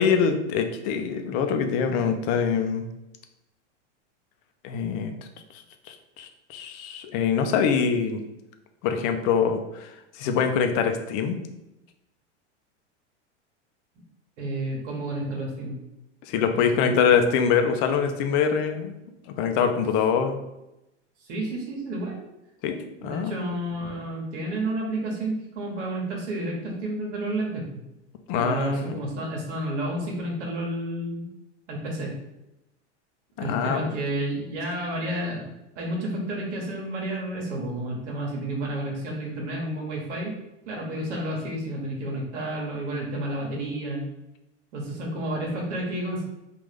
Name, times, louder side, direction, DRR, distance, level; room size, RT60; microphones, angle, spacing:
voice 1, 0.0-2.9 4.6-5.1 5.9-8.2 8.8-11.4 16.3-18.9 19.4-20.4 22.6-23.4 28.3-29.0 33.4-33.9, left 6 dB, 50° left, 6 dB, 0.6 m, -24 dB
voice 2, 14.4-15.8 16.8-17.4 21.3-22.2 23.0-27.8 28.3-31.3 31.7-32.1 33.4-35.5 35.8-40.3 40.7-44.0 44.7-46.2, right 1 dB, 75° right, -2 dB, 1.1 m, -31 dB
3.7 x 2.5 x 3.3 m, 0.91 s
hypercardioid pair, 110°, 36 cm